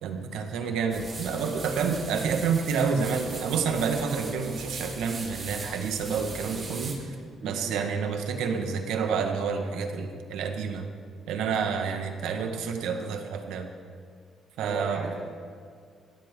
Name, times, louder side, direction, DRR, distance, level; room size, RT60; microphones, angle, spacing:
voice 1, 0.0-7.1 7.4-10.9 11.3-13.7 14.6-15.1, right 5 dB, 90° right, 5 dB, 1.5 m, -29 dB
sound 1, 0.9-6.9, right 3 dB, 40° right, 4.3 m, -40 dB
voice 2, 7.4-7.8 14.6-15.2, right 4 dB, 60° right, -10 dB, 4.3 m, -36 dB
21.0 x 15.5 x 3.8 m, 2.1 s
cardioid pair, 90°, 0 cm